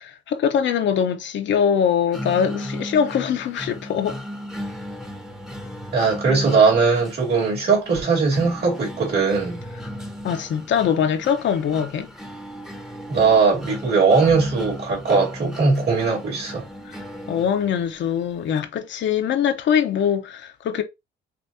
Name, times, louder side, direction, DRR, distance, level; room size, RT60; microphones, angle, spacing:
voice 1, 0.0-4.2 10.2-12.1 16.9-17.0 17.3-20.8, left 8 dB, 70° left, 0.8 m, -22 dB
sound 1, 2.1-18.1, equal, ahead, 0.9 m, -36 dB
voice 2, 5.9-9.6 13.1-16.6, right 4 dB, 55° right, 2.8 m, -19 dB
6.0 x 2.6 x 2.6 m
cardioid pair, 90°, 20 cm